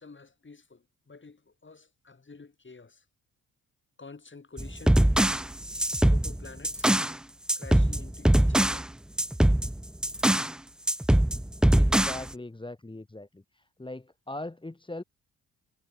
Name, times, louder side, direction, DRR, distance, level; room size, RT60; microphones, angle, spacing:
voice 1, 0.0-3.0 4.0-5.0 6.0-7.0 7.5-8.9, left 4 dB, 30° left, 5.1 m, -49 dB
sound 1, 4.6-7.2 7.5-8.9 9.2-10.5 10.9-12.3, right 1 dB, ahead, 0.3 m, -22 dB
voice 2, 11.7-15.0, left 2 dB, 15° left, 1.7 m, -40 dB
hypercardioid pair, 50°, 37 cm